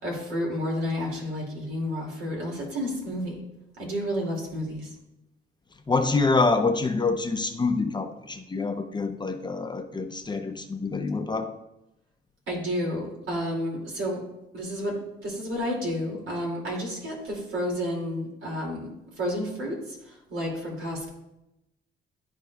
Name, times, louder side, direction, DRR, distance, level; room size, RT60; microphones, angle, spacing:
voice 1, 0.0-3.4 3.8-4.9 12.5-14.2 14.5-14.9 15.2-18.9 19.2-21.1, equal, 80° right, -2 dB, 2.6 m, -31 dB
voice 2, 5.9-11.6, left 3 dB, 20° left, 6 dB, 0.7 m, -26 dB
12.0 x 4.4 x 2.4 m, 0.89 s
cardioid pair, 90°, 20 cm